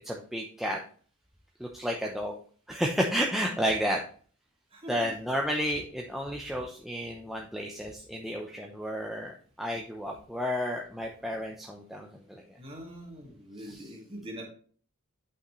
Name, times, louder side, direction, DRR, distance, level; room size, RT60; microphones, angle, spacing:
voice 1, 0.0-0.8 1.6-2.4 2.7-4.0 4.9-9.3 9.6-12.4 13.6-13.9, equal, ahead, 0 dB, 0.6 m, -32 dB
voice 2, 4.7-5.1 12.6-14.4, equal, 25° right, 0 dB, 1.9 m, -43 dB
8.4 x 5.7 x 3.1 m, 0.44 s
head